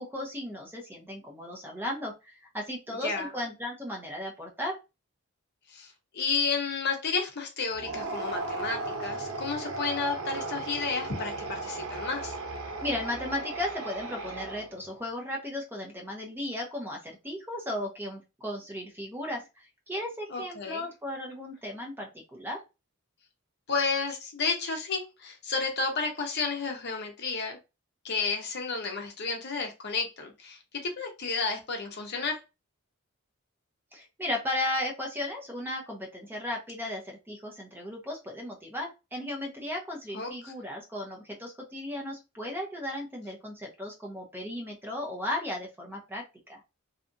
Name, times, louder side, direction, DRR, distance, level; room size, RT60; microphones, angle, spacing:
voice 1, 0.0-4.8 12.8-22.6 33.9-46.2 46.5-46.6, left 1 dB, 10° right, 1 dB, 0.6 m, -35 dB
voice 2, 5.7-12.4 20.3-20.8 23.7-27.6 28.0-32.4 40.1-40.5, left 4 dB, 55° left, 3 dB, 0.7 m, -32 dB
sound 1, 7.7-14.9, right 2 dB, 85° right, 0.7 m, -36 dB
2.8 x 2.3 x 2.5 m, 0.26 s
head